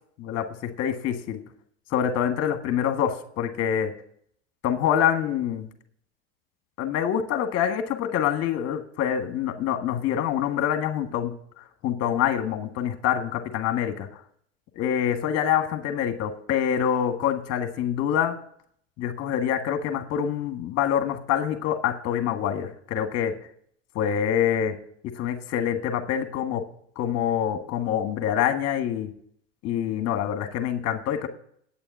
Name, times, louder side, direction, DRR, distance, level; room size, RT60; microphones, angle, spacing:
voice 1, 0.2-1.4 1.9-3.9 4.6-5.7 6.8-14.1 14.7-18.4 19.0-23.4 23.9-24.8 25.1-26.6 27.0-29.1 29.6-31.3, left 9 dB, 45° left, 7 dB, 1.7 m, -26 dB
9.1 x 7.0 x 8.1 m, 0.66 s
supercardioid pair, 115°, 35 cm